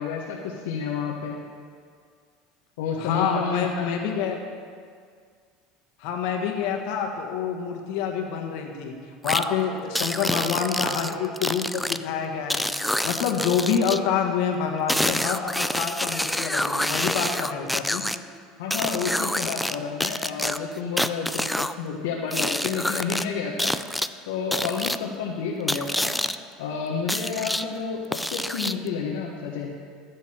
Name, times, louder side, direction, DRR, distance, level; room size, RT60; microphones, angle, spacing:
voice 1, 0.0-1.4 2.8-4.0 18.6-23.7 24.3-26.1 26.6-29.7, left 5 dB, 90° left, -2 dB, 1.0 m, -30 dB
voice 2, 3.0-4.4 6.0-9.0 9.2-12.7 13.0-18.0, left 7 dB, 70° left, 2 dB, 1.5 m, -27 dB
sound 1, 9.2-9.4 10.0-12.0 12.5-14.0 14.9-18.2 18.7-19.8 20.0-21.7 22.3-23.2 23.6-24.1 24.5-25.0 25.7-26.4 27.1-27.6 28.1-28.9, left 1 dB, 5° left, 0.3 m, -27 dB
13.0 x 8.2 x 4.4 m, 2.1 s
supercardioid pair, 115°, 0 cm